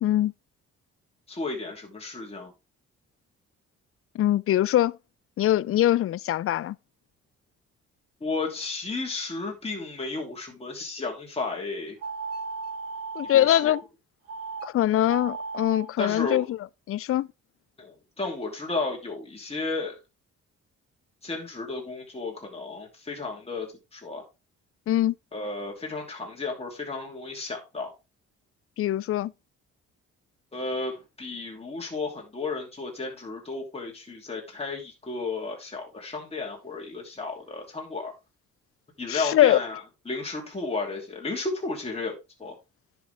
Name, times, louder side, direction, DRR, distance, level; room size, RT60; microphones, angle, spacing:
voice 1, 0.0-0.3 4.1-5.0 5.4-6.8 13.2-13.8 14.6-16.6 16.9-17.3 24.9-25.1 28.8-29.3 39.1-39.6, left 13 dB, 50° left, 0.4 m, -23 dB
voice 2, 1.3-2.5 8.2-12.0 13.3-13.7 16.0-16.5 17.8-20.0 21.2-24.2 25.3-27.9 30.5-38.1 39.0-39.8 40.1-42.5, left 3 dB, 20° left, 2.8 m, -33 dB
sound 1, 12.0-13.8 14.3-14.7 15.0-15.9, right 4 dB, 55° right, 3.8 m, -36 dB
10.0 x 6.4 x 3.5 m
cardioid pair, 90°, 30 cm